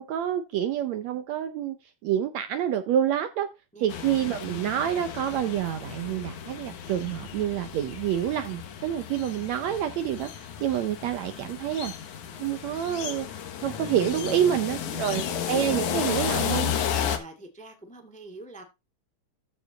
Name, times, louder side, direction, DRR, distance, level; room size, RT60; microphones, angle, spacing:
voice 1, 0.0-1.8 2.0-3.5 3.8-11.9 12.4-16.7, right 10 dB, 70° right, 1.8 m, -28 dB
sound 1, 3.9-17.2, left 9 dB, 70° left, 2.8 m, -33 dB
voice 2, 14.5-15.5 16.8-18.6, right 2 dB, 5° left, 1.4 m, -46 dB
14.0 x 4.9 x 4.0 m
omnidirectional pair, 3.7 m